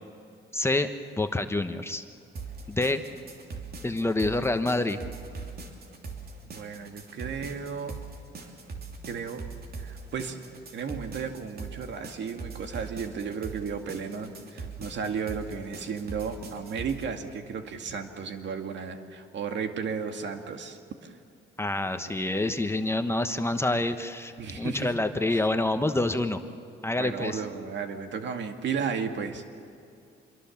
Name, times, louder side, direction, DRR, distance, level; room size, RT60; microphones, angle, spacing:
voice 1, 0.5-0.9 1.2-2.0 2.7-3.0 3.8-5.0 21.6-26.4 26.8-27.4, left 2 dB, 10° left, 8 dB, 1.1 m, -27 dB
sound 1, 2.4-17.1, right 4 dB, 50° right, 3.1 m, -41 dB
voice 2, 6.4-8.0 9.1-9.4 9.8-10.4 10.7-21.1 24.4-24.9 25.3-25.4 27.0-29.4, right 6 dB, 65° right, 5 dB, 2.1 m, -34 dB
26.5 x 22.5 x 7.3 m, 2.4 s
cardioid pair, 90°, 20 cm